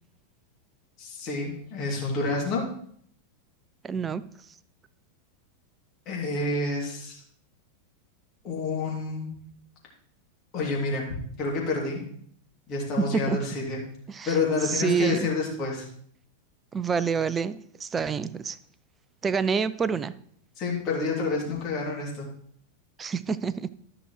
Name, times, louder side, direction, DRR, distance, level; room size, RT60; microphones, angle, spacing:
voice 1, 1.0-2.6 6.1-7.2 8.4-9.3 10.5-11.1 11.4-12.0 12.7-13.8 14.2-15.9 20.6-22.2, left 3 dB, 35° left, -2 dB, 2.9 m, -28 dB
voice 2, 3.8-4.2 13.0-13.4 14.1-14.4 14.6-15.3 16.7-18.6 19.2-20.1 23.0-23.7, right 6 dB, 20° right, 16 dB, 0.4 m, -27 dB
13.0 x 5.9 x 3.2 m, 0.62 s
figure-of-eight pair, 90°, 0 cm